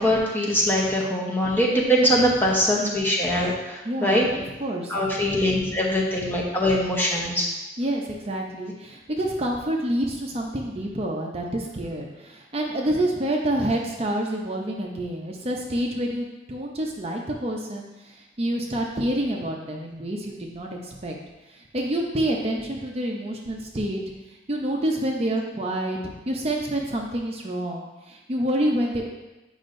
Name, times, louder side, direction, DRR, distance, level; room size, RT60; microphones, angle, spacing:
voice 1, 0.0-4.3 4.9-7.5, equal, 10° left, -3 dB, 0.9 m, -22 dB
voice 2, 3.8-5.7 7.8-21.2 21.5-24.0 24.5-29.1, right 1 dB, 35° right, 0 dB, 0.6 m, -28 dB
8.2 x 5.3 x 2.6 m, 1.1 s
head